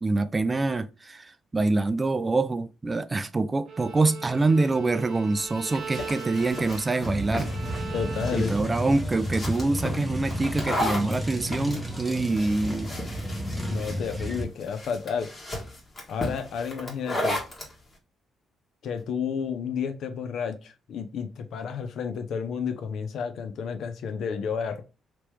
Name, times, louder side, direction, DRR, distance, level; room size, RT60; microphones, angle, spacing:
voice 1, 0.0-7.5 8.3-12.9, right 3 dB, 25° right, 0.3 m, -25 dB
Bowed string instrument, 3.7-8.8, right 6 dB, 60° right, 0.8 m, -40 dB
sound 1, 5.4-17.7, left 1 dB, 30° left, 1.5 m, -35 dB
sound 2, 7.0-14.5, equal, 10° left, 1.0 m, -32 dB
voice 2, 7.9-8.5 13.7-15.3 16.1-17.4 18.8-24.8, left 6 dB, 70° left, 0.6 m, -31 dB
3.0 x 3.0 x 3.3 m
cardioid pair, 90°, 0 cm